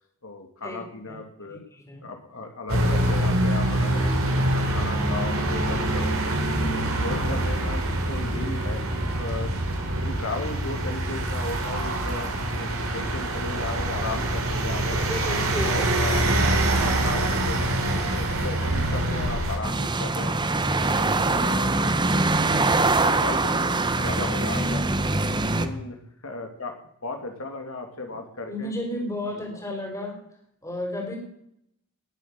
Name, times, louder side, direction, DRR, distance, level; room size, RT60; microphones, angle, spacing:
voice 1, 0.2-1.6 2.0-6.2 6.6-8.8 9.2-15.0 15.5-16.2 16.7-20.4 20.8-21.7 22.1-24.9 25.6-26.0 26.2-26.8 27.0-28.7 29.2-29.6, left 2 dB, 70° left, 4 dB, 2.8 m, -36 dB
voice 2, 1.5-2.1 15.1-16.1 25.6-25.8 28.5-30.2 30.6-31.2, left 1 dB, 15° left, 1 dB, 4.4 m, -34 dB
sound 1, 2.7-19.6, right 1 dB, 70° right, 3.5 m, -25 dB
sound 2, 19.6-25.7, right 2 dB, 20° right, 0.9 m, -23 dB
19.5 x 8.0 x 7.9 m, 0.73 s
head